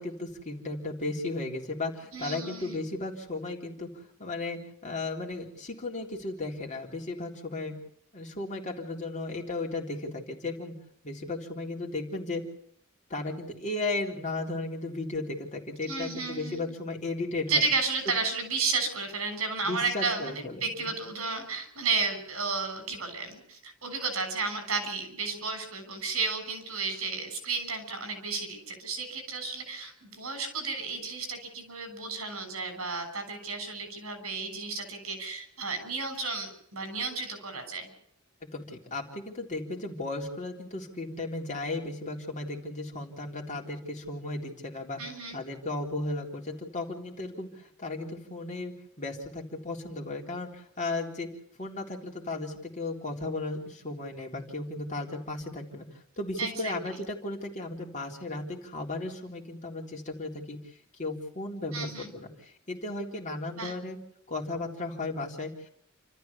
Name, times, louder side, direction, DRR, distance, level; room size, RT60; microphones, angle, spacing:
voice 1, 0.0-7.7 8.1-10.7 11.0-12.4 13.1-17.7 19.6-20.9 38.5-51.3 51.6-60.6 61.0-64.0 64.3-65.7, left 2 dB, 35° left, 0 dB, 3.7 m, -35 dB
voice 2, 2.1-2.8 15.9-16.7 17.5-37.9 45.0-45.4 56.4-57.0 61.7-62.1 63.6-63.7, right 4 dB, 80° right, 8 dB, 6.6 m, -33 dB
29.0 x 14.0 x 7.1 m, 0.70 s
head